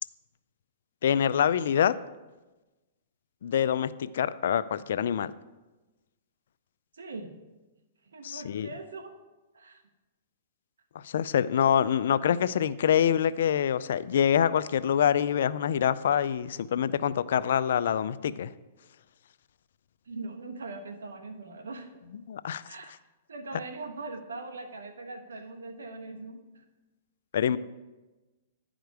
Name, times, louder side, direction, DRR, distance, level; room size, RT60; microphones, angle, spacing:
voice 1, 1.0-1.9 3.4-5.3 8.2-8.7 11.0-18.5 22.3-22.6 27.3-27.6, left 9 dB, 70° left, 16 dB, 0.3 m, -25 dB
voice 2, 6.9-7.4 8.0-9.2 9.5-9.8 20.1-21.9 22.7-22.9 23.3-26.6, right 3 dB, 90° right, 7 dB, 1.1 m, -41 dB
10.5 x 5.0 x 4.7 m, 1.1 s
hypercardioid pair, 135°, 0 cm